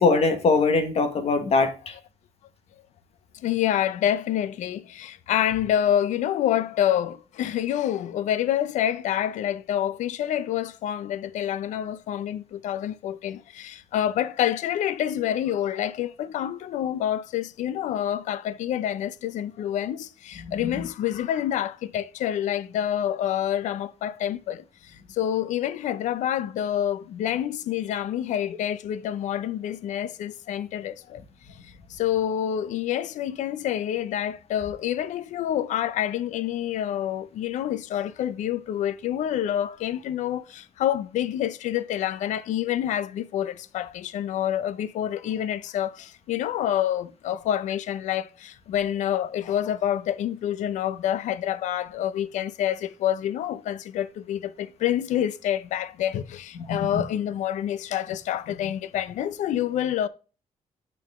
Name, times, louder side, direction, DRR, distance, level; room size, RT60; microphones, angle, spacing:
voice 1, 0.0-1.9 20.4-20.9 56.7-57.0, left 3 dB, 55° left, 1.5 m, -22 dB
voice 2, 3.4-24.6 25.1-31.2 31.9-60.1, left 11 dB, 85° left, 0.6 m, -27 dB
7.1 x 6.0 x 3.5 m
cardioid pair, 105°, 12 cm